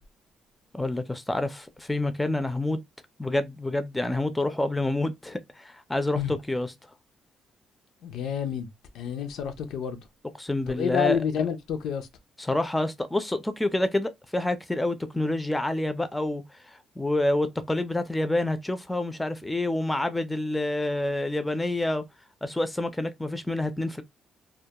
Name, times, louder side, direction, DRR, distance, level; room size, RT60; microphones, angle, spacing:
voice 1, 0.7-2.8 3.2-6.7 10.4-11.2 12.5-22.0 22.4-24.0, left 1 dB, 10° left, 0.4 m, -28 dB
voice 2, 8.0-10.0 10.7-12.1, left 8 dB, 80° left, 0.4 m, -29 dB
2.2 x 2.0 x 2.8 m
cardioid pair, 90°, 0 cm